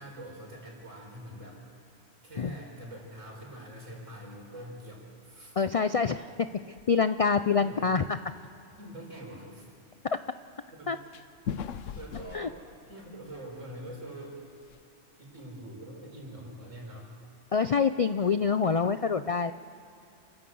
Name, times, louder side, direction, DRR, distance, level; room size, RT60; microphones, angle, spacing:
voice 1, 0.0-5.5 7.5-7.9 8.8-9.7 10.8-11.0 11.9-12.6 12.9-14.4 15.2-17.1, right 1 dB, 90° right, -1 dB, 5.1 m, -44 dB
voice 2, 5.6-6.3 6.7-8.2 10.9-11.0 12.3-12.5 17.5-19.5, left 5 dB, 65° left, 11 dB, 0.3 m, -26 dB
sound 1, 6.8-7.0 7.4-7.8 8.2-8.3 8.7-8.8 11.1-13.6 13.9-14.0 14.4-14.8, left 8 dB, 85° left, 1.1 m, -39 dB
29.0 x 13.0 x 7.8 m, 2.8 s
omnidirectional pair, 1.3 m